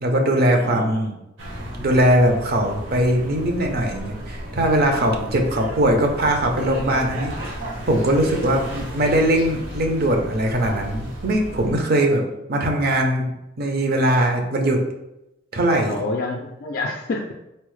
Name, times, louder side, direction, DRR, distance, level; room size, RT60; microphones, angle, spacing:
voice 1, 0.0-1.2 1.8-7.5 7.9-12.2 12.5-14.8 15.5-16.0, right 1 dB, 55° right, 3 dB, 0.6 m, -20 dB
voice 2, 0.5-0.8 5.1-5.3 15.9-17.3, left 2 dB, 50° left, 0 dB, 0.3 m, -28 dB
sound 1, 1.4-11.8, equal, 75° right, 1.0 m, -34 dB
4.2 x 2.0 x 3.1 m, 0.90 s
head